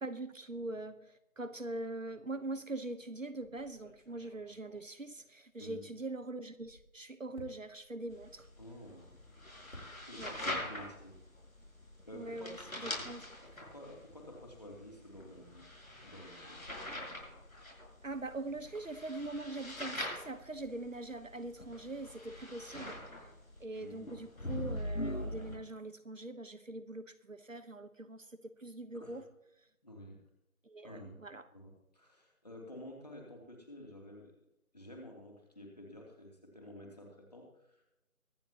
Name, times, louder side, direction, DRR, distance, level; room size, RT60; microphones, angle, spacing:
voice 1, 0.0-8.5 10.2-10.3 12.1-13.2 18.0-23.3 23.6-29.3 30.6-31.5, right 2 dB, 65° right, 12 dB, 1.2 m, -43 dB
sound 1, 3.4-6.1 6.4-10.5 10.8-12.1, left 1 dB, 50° left, 3.7 m, -59 dB
sound 2, 8.1-25.6, left 1 dB, 70° left, 5.7 m, -43 dB
voice 2, 8.6-9.0 9.4-11.2 12.0-12.6 13.0-13.1 13.4-15.7 16.0-16.6 23.7-24.3 28.9-29.2 29.8-30.2 30.8-31.2 31.5-34.3 34.7-38.0, left 1 dB, 30° left, 0 dB, 2.8 m, -51 dB
23.5 x 9.4 x 2.9 m, 0.87 s
figure-of-eight pair, 175°, 43 cm